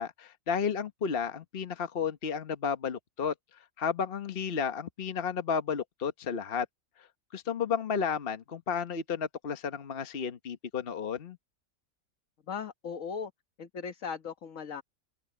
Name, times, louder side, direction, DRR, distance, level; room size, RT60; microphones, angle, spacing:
voice 1, 0.0-3.3 3.8-6.7 7.3-11.4, left 6 dB, 45° left, 1.2 m, -32 dB
voice 2, 12.5-13.3 13.6-14.8, left 6 dB, 65° left, 1.6 m, -38 dB
omnidirectional pair, 1.5 m